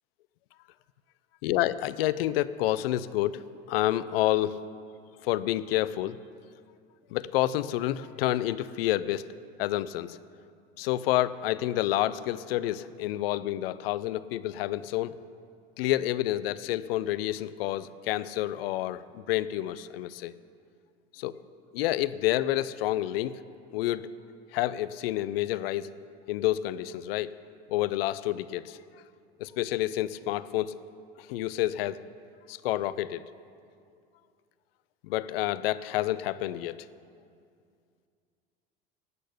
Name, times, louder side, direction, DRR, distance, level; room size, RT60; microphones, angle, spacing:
voice 1, 1.4-3.4 3.7-4.6 5.2-6.2 7.1-9.2 9.6-10.2 10.8-15.2 15.8-20.3 21.2-21.3 21.7-23.4 23.7-24.1 24.5-25.9 26.3-27.3 27.7-28.8 29.4-30.7 31.2-32.0 32.5-33.2 35.0-36.8, left 14 dB, 75° left, 17 dB, 0.5 m, -29 dB
12.0 x 8.5 x 8.1 m, 2.3 s
hypercardioid pair, 75°, 29 cm